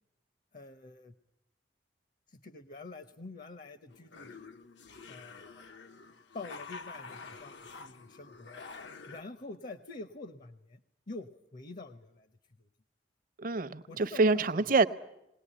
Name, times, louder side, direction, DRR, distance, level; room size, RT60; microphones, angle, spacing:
voice 1, 0.5-1.1 2.3-4.4 5.1-5.6 6.3-8.6 9.1-10.8 11.1-12.3 12.6-12.7 13.9-14.7, left 3 dB, 50° left, 11 dB, 0.8 m, -46 dB
sound 1, 3.9-9.2, left 4 dB, 80° left, 0.9 m, -48 dB
voice 2, 13.4-14.9, right 3 dB, 50° right, 13 dB, 0.7 m, -26 dB
21.0 x 18.0 x 10.0 m, 0.87 s
head